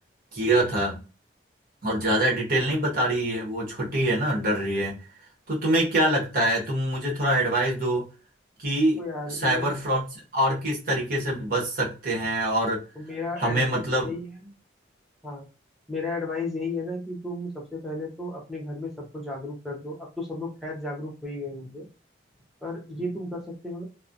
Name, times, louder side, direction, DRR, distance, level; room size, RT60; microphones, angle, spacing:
voice 1, 0.3-1.0 1.8-5.0 5.5-8.1 8.6-9.0 9.3-12.8 13.4-14.1, right 1 dB, 50° right, -3 dB, 1.2 m, -25 dB
voice 2, 9.0-9.7 12.9-13.7 14.0-14.5 15.2-15.5 15.9-21.9 22.6-23.8, left 2 dB, ahead, -2 dB, 0.8 m, -34 dB
3.0 x 2.1 x 2.5 m, 0.34 s
head